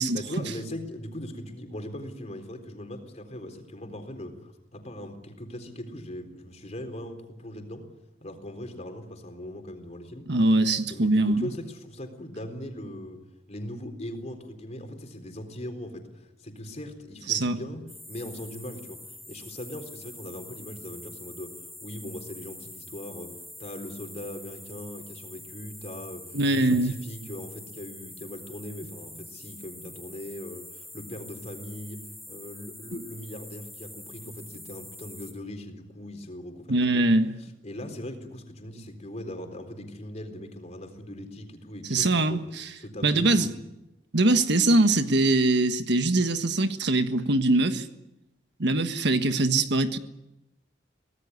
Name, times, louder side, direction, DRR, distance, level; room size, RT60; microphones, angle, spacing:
voice 1, 0.1-7.9 8.2-10.3 10.9-13.2 13.5-16.1 16.4-19.0 19.3-37.1 37.6-42.4 42.8-43.6, left 1 dB, 40° left, 4.0 m, -40 dB
voice 2, 10.3-11.5 17.3-17.6 26.3-27.0 36.7-37.3 41.9-42.6 43.0-43.5 44.1-47.9 48.6-50.0, right 2 dB, 65° right, 1.5 m, -22 dB
sound 1, 17.9-35.3, left 1 dB, ahead, 5.3 m, -45 dB
25.0 x 18.0 x 9.8 m
head